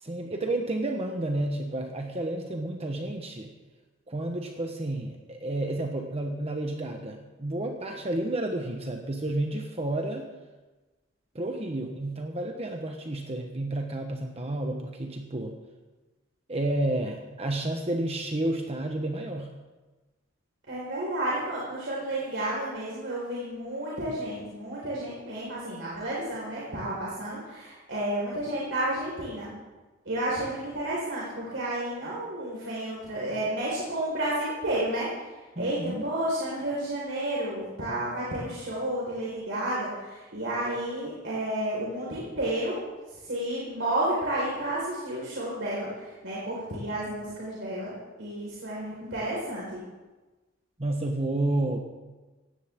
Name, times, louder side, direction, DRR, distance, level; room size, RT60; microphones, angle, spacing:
voice 1, 0.0-3.5 4.1-10.3 11.3-15.5 16.5-19.5 35.6-36.1 50.8-51.8, right 1 dB, 30° right, 3 dB, 1.2 m, -31 dB
voice 2, 20.7-29.5 30.0-47.9 48.2-49.8, right 1 dB, 70° right, -6 dB, 4.6 m, -31 dB
18.0 x 16.0 x 3.7 m, 1.2 s
head